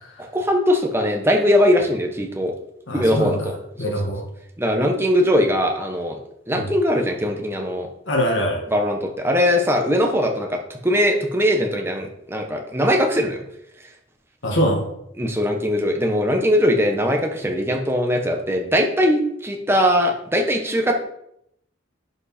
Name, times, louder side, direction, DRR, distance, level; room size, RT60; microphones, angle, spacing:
voice 1, 0.2-2.5 2.9-3.5 3.8-3.9 4.6-6.2 6.5-7.9 8.7-13.4 15.2-20.9, equal, 10° right, 2 dB, 1.2 m, -20 dB
voice 2, 2.9-3.3 3.8-4.2 6.6-6.7 8.1-8.6 14.4-14.8, equal, 75° left, 0 dB, 2.0 m, -22 dB
10.5 x 5.3 x 4.3 m, 0.76 s
head